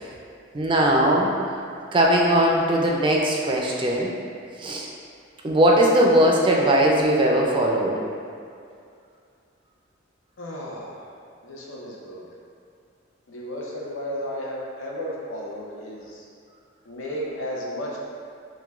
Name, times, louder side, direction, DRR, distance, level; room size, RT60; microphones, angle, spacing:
voice 1, 0.5-1.6 1.9-4.1 4.6-4.9 5.4-8.0, right 1 dB, 25° right, -2 dB, 0.3 m, -19 dB
voice 2, 10.4-11.1 11.4-12.2 13.3-16.2 16.9-18.0, equal, 80° left, -4 dB, 0.7 m, -33 dB
5.8 x 2.2 x 2.4 m, 2.4 s
head